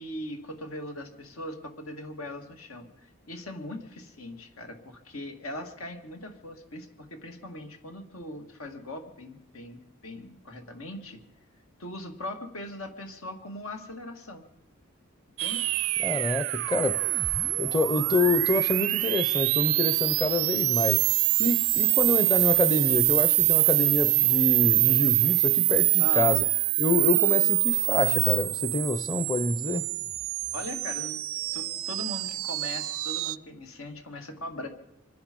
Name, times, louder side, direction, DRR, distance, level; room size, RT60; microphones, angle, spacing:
voice 1, 0.0-2.9 3.3-11.2 11.8-14.5 15.4-15.7 26.0-26.4 30.5-31.2 31.5-34.7, left 1 dB, 85° left, 2.1 m, -40 dB
sound 1, 15.4-33.4, right 20 dB, 80° right, 0.5 m, -25 dB
voice 2, 16.0-17.1 17.6-21.0 21.4-26.4 26.8-29.9, left 2 dB, 20° left, 0.6 m, -27 dB
25.0 x 10.5 x 5.3 m
head